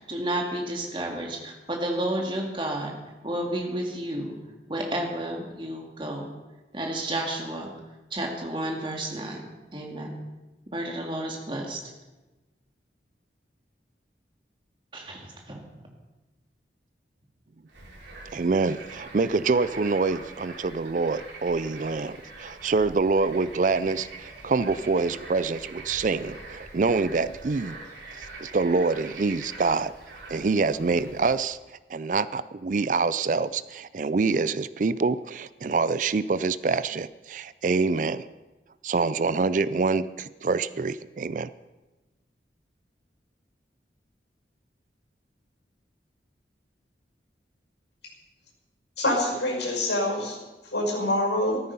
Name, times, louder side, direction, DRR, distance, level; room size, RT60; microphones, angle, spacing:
voice 1, 0.0-2.9 3.2-4.4 4.7-6.3 6.7-7.7 8.1-10.2 10.7-11.8 14.9-15.8, right 1 dB, 30° right, 1 dB, 2.1 m, -31 dB
Bird / Frog, 17.7-31.5, right 2 dB, 90° right, 3.1 m, -44 dB
voice 2, 18.3-27.8 28.4-29.9 30.3-31.6 31.9-38.3 38.8-41.5, right 4 dB, 45° right, 16 dB, 0.4 m, -26 dB
voice 3, 49.0-50.4 50.6-51.6, left 1 dB, 80° left, 0 dB, 5.7 m, -25 dB
14.5 x 13.5 x 5.5 m, 1.1 s
head